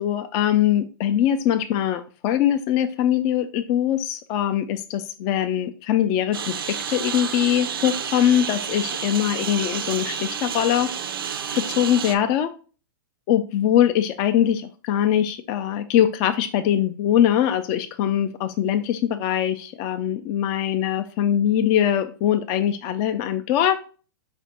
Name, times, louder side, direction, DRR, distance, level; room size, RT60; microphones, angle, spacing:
voice 1, 0.0-10.9 11.5-12.5 13.3-23.8, left 10 dB, 35° left, 9 dB, 0.3 m, -22 dB
Engine, 6.3-12.2, right 7 dB, 90° right, 0.5 m, -30 dB
4.3 x 2.4 x 4.2 m, 0.37 s
hypercardioid pair, 130°, 12 cm